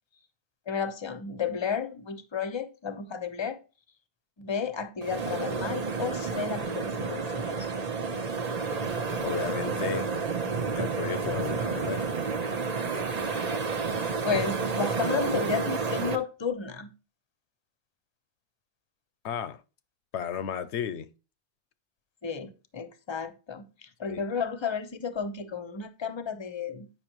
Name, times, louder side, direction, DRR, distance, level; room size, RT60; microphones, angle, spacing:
voice 1, 0.7-3.6 4.4-7.7 14.2-16.9 22.2-26.9, left 6 dB, 30° left, 0.7 m, -32 dB
sound 1, 5.0-16.2, right 5 dB, 40° right, 0.9 m, -30 dB
voice 2, 9.2-10.1 10.8-12.1 19.2-19.6 20.1-21.1 24.1-24.2, left 8 dB, 80° left, 0.9 m, -33 dB
8.8 x 5.8 x 3.0 m
omnidirectional pair, 1.1 m